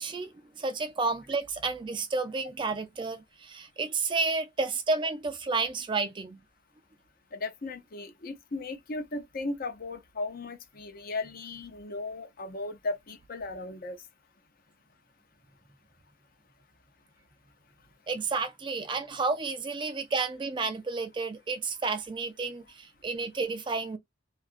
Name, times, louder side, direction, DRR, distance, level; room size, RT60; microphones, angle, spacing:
voice 1, 0.0-6.4 18.1-24.0, right 4 dB, 25° right, 0.4 m, -31 dB
voice 2, 7.3-14.0, left 2 dB, 45° left, 0.6 m, -36 dB
2.8 x 2.4 x 2.4 m
head